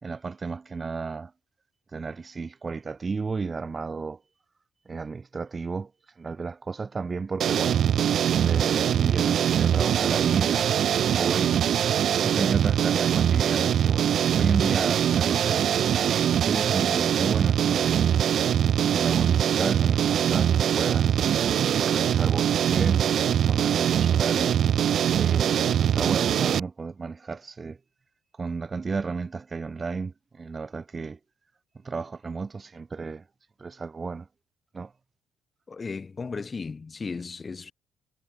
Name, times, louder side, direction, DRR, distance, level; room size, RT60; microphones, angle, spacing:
voice 1, 0.0-1.3 1.9-4.2 4.9-5.9 6.2-7.8 8.4-11.7 12.2-15.7 16.2-18.2 18.8-21.2 21.8-24.6 25.1-27.8 28.4-31.2 31.8-33.2 33.6-34.3 34.7-34.9, right 4 dB, 30° right, 3.9 m, -33 dB
sound 1, 7.4-26.6, right 9 dB, 65° right, 0.5 m, -22 dB
voice 2, 35.7-37.7, left 4 dB, 30° left, 4.7 m, -35 dB
cardioid pair, 85°, 0 cm